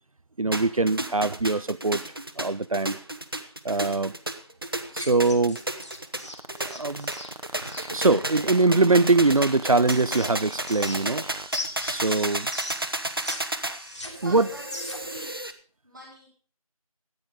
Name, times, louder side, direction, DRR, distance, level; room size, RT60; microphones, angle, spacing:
voice 1, 0.4-2.0 2.4-3.0 3.6-4.1 4.9-5.6 6.7-7.1 7.9-11.4 11.9-12.5 14.2-14.5, right 3 dB, 70° right, 0.6 m, -22 dB
sound 1, 0.5-15.5, right 1 dB, 40° right, 1.1 m, -33 dB
sound 2, 4.9-7.9 9.3-11.2 11.5-13.4 13.6-15.2, left 2 dB, 50° left, 3.0 m, -38 dB
sound 3, 6.3-11.5, right 2 dB, 90° right, 1.3 m, -41 dB
voice 2, 14.0-15.4 15.8-16.3, right 1 dB, ahead, 1.1 m, -43 dB
13.5 x 9.6 x 5.2 m
figure-of-eight pair, 175°, 19 cm